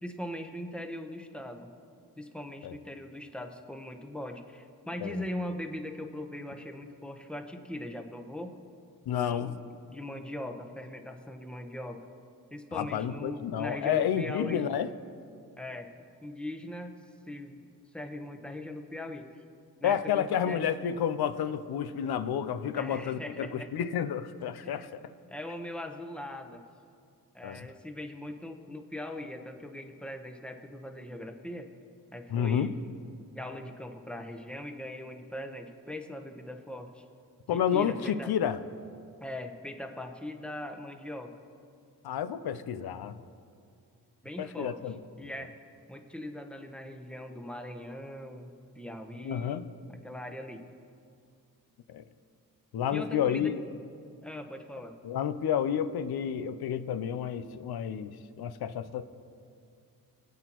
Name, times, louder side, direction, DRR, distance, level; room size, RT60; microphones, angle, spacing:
voice 1, 0.0-1.7 2.2-8.5 9.1-12.1 12.5-14.7 15.6-15.9 16.2-17.0 17.3-17.6 17.9-19.4 19.8-20.7 22.7-23.7 24.6-24.9 25.3-26.6 27.3-31.7 32.1-32.8 33.3-37.0 37.5-38.3 39.2-41.4 44.2-44.8 45.2-45.5 45.9-49.6 49.9-50.6 52.9-53.6 54.2-55.0, left 1 dB, 5° left, 5 dB, 0.9 m, -40 dB
voice 2, 9.1-9.6 12.7-14.9 19.8-25.0 27.4-27.7 32.3-32.7 37.5-38.6 42.0-43.2 44.4-45.0 49.2-49.7 51.9-52.0 52.7-53.6 55.0-59.0, left 8 dB, 75° left, 12 dB, 0.7 m, -30 dB
22.0 x 8.2 x 3.0 m, 2.4 s
cardioid pair, 80°, 37 cm